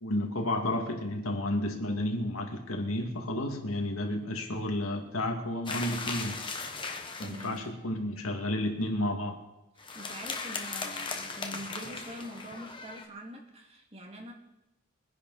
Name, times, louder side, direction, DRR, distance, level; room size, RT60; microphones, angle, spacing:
voice 1, 0.0-6.3 7.2-9.4, left 1 dB, 80° left, 2 dB, 2.3 m, -31 dB
sound 1, 5.7-7.7 9.8-13.1, left 4 dB, 25° left, 1.4 m, -37 dB
voice 2, 7.2-7.6 9.8-14.3, equal, 30° right, 1 dB, 2.3 m, -44 dB
23.5 x 10.5 x 4.2 m, 0.93 s
head